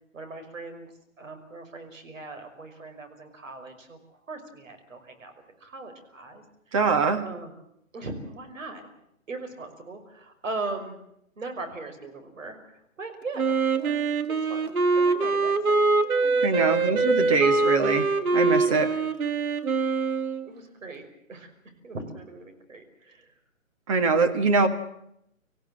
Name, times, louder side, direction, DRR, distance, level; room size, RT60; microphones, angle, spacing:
voice 1, 0.1-5.3 5.6-6.8 7.2-7.5 7.9-8.8 9.3-11.0 11.4-14.0 14.3-15.9 16.2-16.8 17.3-17.4 18.5-18.9 20.4-21.5 21.8-23.3, right 3 dB, 65° right, 6 dB, 5.6 m, -39 dB
voice 2, 6.7-7.2 16.4-18.9 23.9-24.7, right 4 dB, 25° right, 6 dB, 1.7 m, -23 dB
Wind instrument woodwind instrument, 13.4-20.5, right 3 dB, 85° right, 2.3 m, -24 dB
26.0 x 15.5 x 8.9 m, 0.76 s
hypercardioid pair, 160°, 42 cm